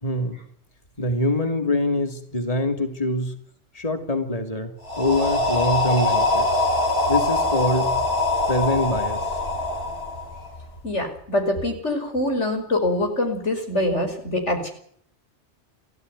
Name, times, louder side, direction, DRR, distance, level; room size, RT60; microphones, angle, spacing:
voice 1, 0.0-0.4 1.0-3.3 3.7-6.6 7.1-8.0 8.5-9.2, left 1 dB, 30° left, 6 dB, 2.8 m, -24 dB
sound 1, 4.8-10.8, left 2 dB, 60° left, 4.4 m, -23 dB
voice 2, 10.8-14.7, left 1 dB, 90° left, 4 dB, 5.7 m, -24 dB
29.0 x 14.5 x 9.6 m, 0.63 s
omnidirectional pair, 1.2 m